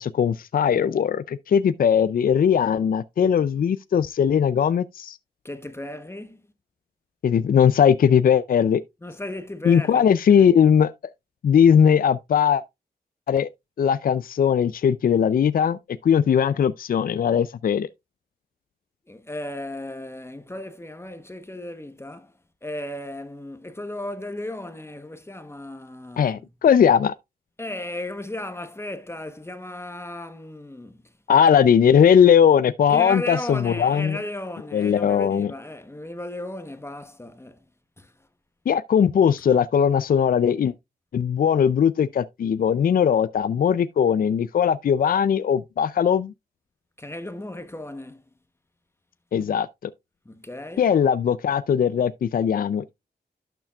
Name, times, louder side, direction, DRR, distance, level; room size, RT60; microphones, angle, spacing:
voice 1, 0.0-5.2 7.2-8.8 9.7-10.9 11.4-12.6 13.3-13.5 13.8-15.8 16.0-17.9 26.2-27.1 31.3-34.2 34.7-35.5 38.7-40.7 41.1-46.3 49.3-49.9 50.8-52.9, left 8 dB, 60° left, 0.4 m, -19 dB
voice 2, 5.4-6.4 9.0-10.5 19.1-22.3 22.6-26.5 27.6-31.1 31.5-31.6 32.9-37.7 38.0-38.3 47.0-48.3 50.2-50.9, left 1 dB, 15° left, 1.0 m, -35 dB
11.5 x 6.9 x 2.3 m
wide cardioid pair, 85°, 17 cm